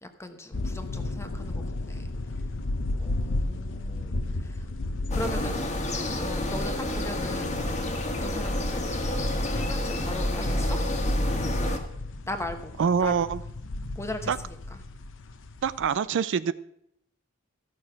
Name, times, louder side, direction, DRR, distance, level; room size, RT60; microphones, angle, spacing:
voice 1, 0.0-2.1 3.0-4.7 5.1-5.8 6.2-7.6 8.0-9.0 9.4-10.8 12.3-12.7 13.0-13.2 13.9-14.6, left 1 dB, 15° left, 7 dB, 1.0 m, -38 dB
sound 1, 0.5-16.0, left 2 dB, 65° left, 0.8 m, -34 dB
sound 2, 5.1-11.8, left 1 dB, 35° left, 1.5 m, -28 dB
voice 2, 12.8-13.4 14.3-14.4 15.6-16.5, right 6 dB, 65° right, 15 dB, 0.4 m, -25 dB
14.0 x 6.5 x 5.8 m, 0.76 s
head